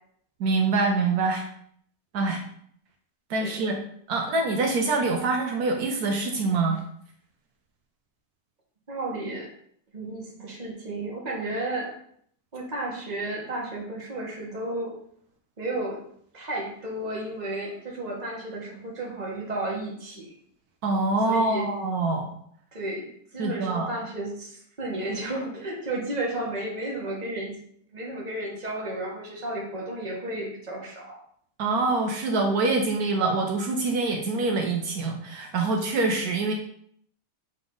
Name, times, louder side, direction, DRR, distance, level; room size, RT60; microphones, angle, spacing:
voice 1, 0.4-1.4 2.1-2.4 3.3-3.8 4.1-6.8 20.8-22.3 23.4-23.9 31.6-36.5, right 3 dB, 75° right, 2 dB, 1.2 m, -25 dB
voice 2, 8.9-9.5 9.9-11.9 12.5-15.0 15.6-16.0 16.3-20.4 21.2-21.7 22.7-27.6 27.9-31.2, right 1 dB, 25° right, -2 dB, 1.5 m, -33 dB
7.0 x 3.6 x 3.8 m, 0.65 s
omnidirectional pair, 1.7 m